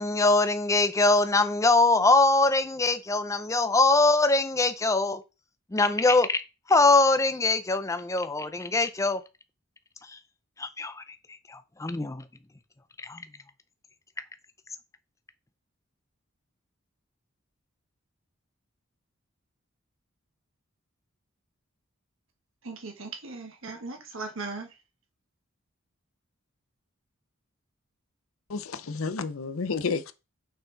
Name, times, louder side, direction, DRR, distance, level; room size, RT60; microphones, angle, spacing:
voice 1, 0.0-5.2 5.7-6.4 6.7-9.2 10.0-10.2 10.6-11.0 11.5-12.2 13.0-13.2, left 3 dB, 15° left, 0.5 m, -23 dB
voice 2, 22.6-24.7, right 3 dB, 70° right, 1.5 m, -38 dB
voice 3, 28.5-30.1, left 4 dB, 80° left, 0.6 m, -31 dB
6.3 x 4.4 x 3.9 m
head